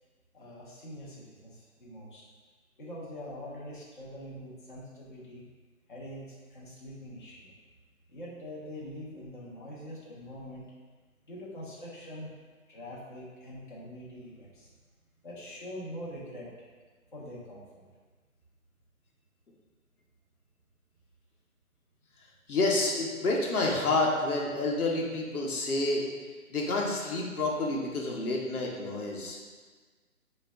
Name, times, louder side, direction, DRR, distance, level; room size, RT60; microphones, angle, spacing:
voice 1, 0.3-2.2 2.8-5.4 5.9-7.5 8.1-10.6 11.3-12.3 12.7-14.7 15.2-16.5 17.1-17.9, equal, 35° left, -6 dB, 0.6 m, -44 dB
voice 2, 22.5-26.0 26.5-29.4, left 2 dB, 80° left, -2 dB, 0.9 m, -29 dB
4.0 x 2.1 x 3.4 m, 1.4 s
hypercardioid pair, 170°, 43 cm